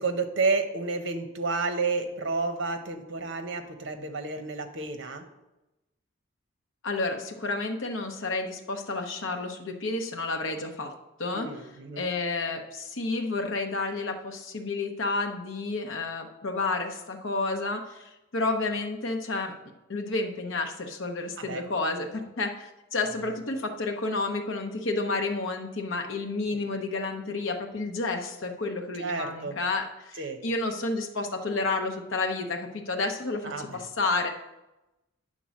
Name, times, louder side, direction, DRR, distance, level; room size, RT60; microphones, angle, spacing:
voice 1, 0.0-5.3 11.3-12.1 21.4-21.6 23.2-23.3 26.5-26.6 29.0-29.6 30.2-30.4 33.4-33.8, right 3 dB, 60° right, 7 dB, 0.8 m, -31 dB
voice 2, 6.8-10.9 11.2-11.5 12.0-19.5 19.9-34.3, left 3 dB, 70° left, 3 dB, 0.8 m, -30 dB
9.1 x 3.8 x 6.3 m, 0.98 s
head